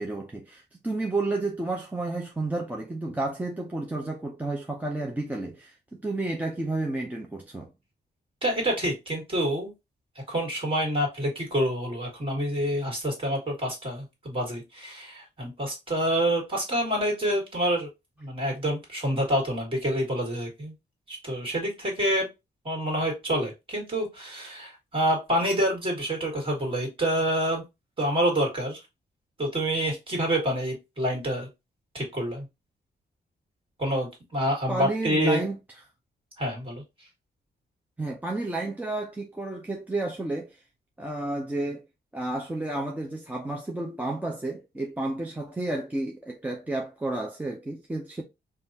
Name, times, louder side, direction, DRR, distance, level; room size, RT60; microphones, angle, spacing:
voice 1, 0.0-7.7 34.7-35.6 38.0-40.6 41.0-41.9 42.1-48.2, right 2 dB, 10° right, 0.4 m, -31 dB
voice 2, 8.4-9.7 10.3-17.9 18.2-20.7 21.1-22.2 22.6-27.6 28.0-28.8 29.4-31.5 31.9-32.5 33.8-35.4 36.4-36.8, equal, 30° right, 1.8 m, -27 dB
5.2 x 2.3 x 2.7 m
wide cardioid pair, 175°, 18 cm